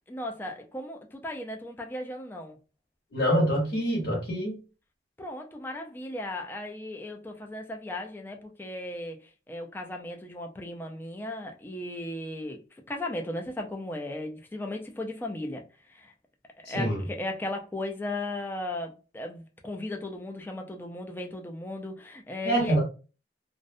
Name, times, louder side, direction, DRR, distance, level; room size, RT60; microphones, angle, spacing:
voice 1, 0.1-2.6 5.2-9.2 9.5-12.6 12.9-15.6 15.9-16.1 16.7-22.8, left 1 dB, 10° left, 0.3 m, -36 dB
voice 2, 3.1-4.6 16.7-17.0 22.4-22.8, equal, 60° left, 0.8 m, -25 dB
2.5 x 2.0 x 2.5 m
head